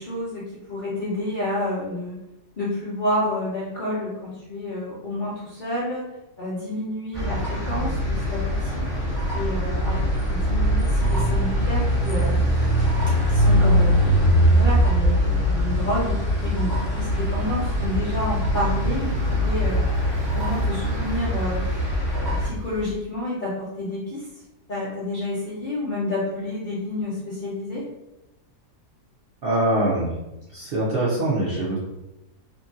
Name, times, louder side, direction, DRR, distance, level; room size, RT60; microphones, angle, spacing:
voice 1, 0.0-2.2 2.6-6.1 6.4-8.9 9.3-12.5 13.3-14.0 14.5-19.8 20.3-21.6 22.1-24.3 24.7-27.9, left 1 dB, 65° left, -8 dB, 0.5 m, -29 dB
sound 1, 7.1-22.5, equal, 30° right, 1.0 m, -22 dB
sound 2, 7.8-23.0, left 4 dB, 85° right, 1.2 m, -33 dB
voice 2, 29.4-30.1 30.5-31.8, right 1 dB, 65° right, -6 dB, 0.5 m, -23 dB
2.8 x 2.6 x 2.5 m, 0.94 s
omnidirectional pair, 1.7 m